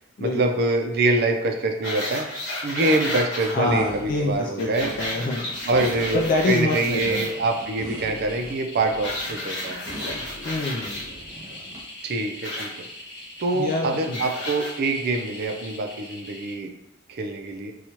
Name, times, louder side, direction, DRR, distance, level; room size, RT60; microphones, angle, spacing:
voice 1, 0.2-2.3 2.6-4.9 5.6-9.8 12.0-12.7 13.4-16.7 17.1-17.7, right 2 dB, 55° right, 4 dB, 0.5 m, -25 dB
sound 1, 1.8-3.5 4.6-7.3 9.0-11.0 12.4-12.7 14.1-14.7 15.4-15.5, left 1 dB, 65° left, 1.1 m, -32 dB
voice 2, 3.5-5.5 6.1-7.2 10.4-11.0 13.5-14.2, left 2 dB, 45° left, 0 dB, 0.4 m, -26 dB
sound 2, 3.6-11.8, right 1 dB, 20° right, 1.1 m, -41 dB
sound 3, 3.9-4.3 4.6-16.5, left 1 dB, 20° left, 1.3 m, -41 dB
4.3 x 2.3 x 2.9 m, 0.86 s
head